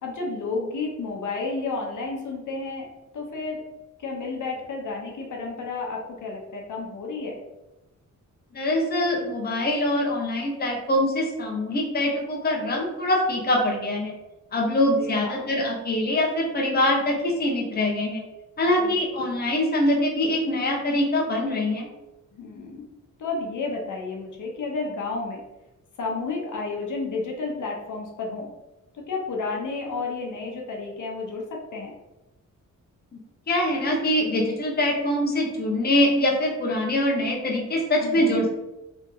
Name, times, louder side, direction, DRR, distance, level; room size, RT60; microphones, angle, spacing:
voice 1, 0.0-2.9 3.1-3.6 4.0-7.4 14.8-15.5 18.8-19.2 22.3-22.9 23.2-25.4 26.0-28.5 28.9-31.9 38.0-38.3, left 3 dB, 70° left, -1 dB, 1.0 m, -31 dB
voice 2, 8.5-14.1 14.5-18.2 18.6-21.9 33.5-38.5, left 1 dB, 30° left, -1 dB, 0.9 m, -24 dB
3.6 x 3.1 x 3.8 m, 1.0 s
wide cardioid pair, 125°, 31 cm